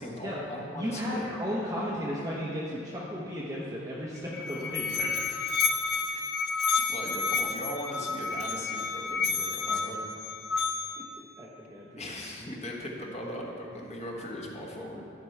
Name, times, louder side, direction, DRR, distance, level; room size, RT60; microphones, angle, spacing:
voice 1, 0.0-1.3 5.0-5.1 6.9-10.0 12.0-15.0, left 1 dB, 30° left, -1 dB, 1.1 m, -39 dB
voice 2, 0.8-5.5 6.1-6.2 11.4-12.0, equal, 15° right, -6 dB, 0.8 m, -34 dB
Musical instrument, 4.2-11.1, left 4 dB, 55° left, 0.7 m, -30 dB
13.0 x 5.2 x 4.5 m, 2.7 s
head